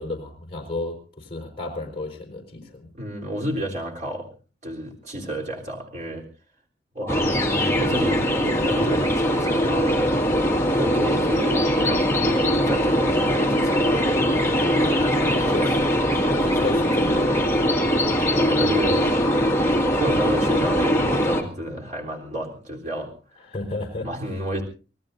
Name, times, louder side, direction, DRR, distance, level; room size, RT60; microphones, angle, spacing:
voice 1, 0.0-2.9 15.0-15.7 16.4-17.7 23.5-24.1, left 2 dB, 30° left, 1 dB, 4.6 m, -32 dB
voice 2, 2.9-4.3 4.6-6.3 6.9-10.2 10.7-13.9 14.7-15.8 18.4-19.1 19.9-23.1 24.0-24.6, equal, 40° right, -1 dB, 3.6 m, -30 dB
sound 1, 7.1-21.4, equal, 15° left, 1.9 m, -21 dB
26.0 x 18.5 x 2.7 m, 0.36 s
head